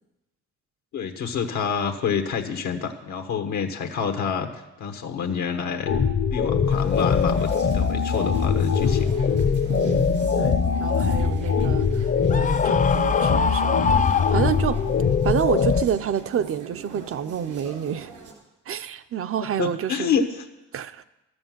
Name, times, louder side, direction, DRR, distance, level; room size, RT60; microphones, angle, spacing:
voice 1, 0.9-4.5 4.8-5.9 6.3-9.1 19.6-20.4, left 6 dB, 70° left, 6 dB, 1.2 m, -27 dB
sound 1, 5.9-15.8, left 6 dB, 40° left, 0.8 m, -22 dB
sound 2, 6.7-18.3, right 4 dB, 85° right, 3.4 m, -41 dB
voice 2, 9.7-14.8 15.2-18.1 18.7-20.1 20.7-21.0, right 9 dB, 45° right, 12 dB, 0.6 m, -29 dB
Screaming, 12.3-15.0, left 5 dB, 25° left, 0.3 m, -25 dB
12.5 x 7.9 x 7.4 m, 0.96 s
cardioid pair, 90°, 30 cm